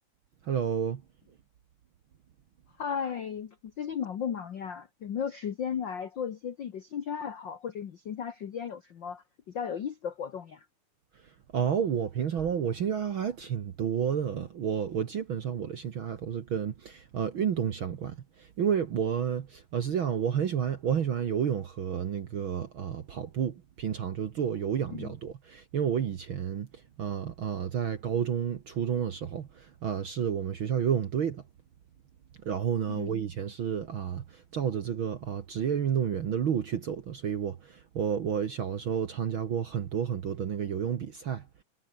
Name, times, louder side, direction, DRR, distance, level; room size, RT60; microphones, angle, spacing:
voice 1, 0.4-1.0 11.5-26.7 27.0-31.4 32.4-41.5, right 8 dB, 55° right, 1.5 m, -30 dB
voice 2, 2.8-10.6 24.9-25.1 33.0-33.2, left 7 dB, 65° left, 1.1 m, -35 dB
omnidirectional pair, 3.8 m